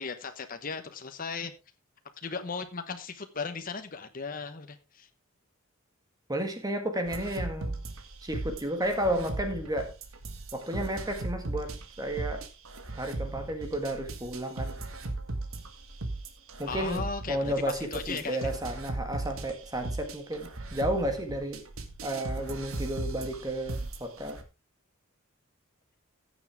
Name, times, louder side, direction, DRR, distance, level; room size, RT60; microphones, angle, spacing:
voice 1, 0.0-1.5 2.2-5.1 16.7-17.5 17.9-18.5, left 5 dB, 40° left, 7 dB, 1.0 m, -36 dB
voice 2, 6.3-7.8 8.2-9.9 10.5-12.5 12.9-14.8 16.6-21.6 22.0-24.4, right 1 dB, 20° right, 5 dB, 1.6 m, -32 dB
sound 1, 7.1-24.4, right 2 dB, 80° right, 1.9 m, -37 dB
15.5 x 7.3 x 3.5 m, 0.27 s
head